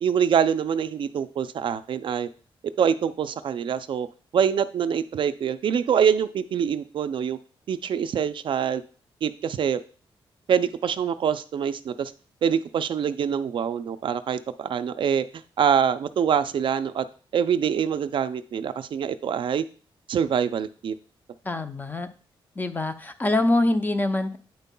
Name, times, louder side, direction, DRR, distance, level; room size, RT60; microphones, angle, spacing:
voice 1, 0.0-2.3 2.8-4.1 4.3-7.4 7.7-8.8 9.2-9.8 10.5-12.1 12.4-15.2 15.6-17.0 17.3-19.6 20.1-20.9, right 8 dB, 60° right, 12 dB, 0.4 m, -25 dB
voice 2, 21.5-22.1 22.6-24.4, left 2 dB, 20° left, 9 dB, 0.5 m, -24 dB
9.0 x 5.3 x 2.2 m, 0.41 s
wide cardioid pair, 125°, 10 cm